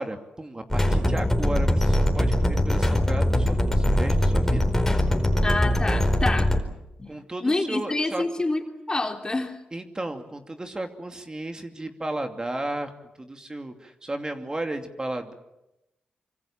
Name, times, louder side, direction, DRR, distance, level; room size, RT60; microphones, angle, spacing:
voice 1, 0.0-4.6 7.1-8.2 9.7-12.9 13.2-15.3, right 1 dB, 25° right, 5 dB, 2.7 m, -34 dB
sound 1, 0.7-6.6, left 1 dB, 10° left, 4.6 m, -22 dB
voice 2, 5.4-6.5 7.0-7.1 7.4-9.6, left 2 dB, 25° left, 4 dB, 3.3 m, -27 dB
25.5 x 24.5 x 7.5 m, 0.91 s
cardioid pair, 65°, 3 cm